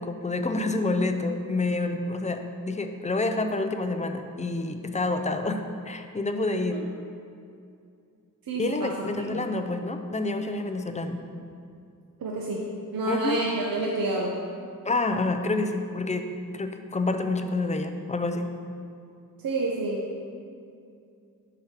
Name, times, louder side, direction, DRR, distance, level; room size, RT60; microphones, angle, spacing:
voice 1, 0.0-6.8 8.6-11.2 13.1-13.4 14.8-16.3 16.5-18.5, left 2 dB, 20° left, 6 dB, 0.4 m, -28 dB
voice 2, 8.5-9.5 12.2-14.3 19.4-20.1, right 2 dB, 70° right, -2 dB, 0.7 m, -29 dB
5.0 x 4.4 x 5.8 m, 2.4 s
wide cardioid pair, 100°, 36 cm